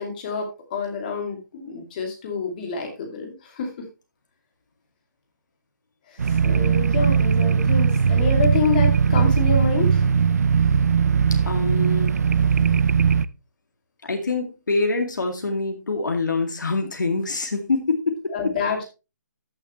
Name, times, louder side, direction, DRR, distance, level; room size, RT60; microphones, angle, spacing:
voice 1, 0.0-3.7 6.1-10.0 12.4-12.8 18.3-18.9, left 4 dB, 25° left, 3 dB, 2.5 m, -28 dB
sound 1, 6.2-13.3, right 6 dB, 55° right, 0.5 m, -19 dB
voice 2, 11.3-12.3 14.0-18.3, left 3 dB, 75° left, 3 dB, 2.2 m, -25 dB
13.5 x 6.9 x 3.1 m, 0.28 s
hypercardioid pair, 170°, 10 cm